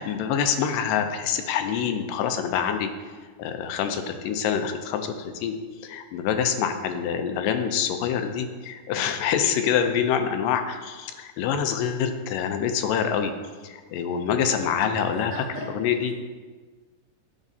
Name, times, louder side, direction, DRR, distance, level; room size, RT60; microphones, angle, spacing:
voice 1, 0.0-2.9 3.4-5.6 5.8-13.3 13.6-15.3 15.7-16.1, left 8 dB, 85° left, 7 dB, 2.2 m, -26 dB
voice 2, 6.2-6.9 14.4-16.2, right 2 dB, 70° right, -3 dB, 1.7 m, -41 dB
10.5 x 4.1 x 2.7 m, 1.4 s
omnidirectional pair, 3.8 m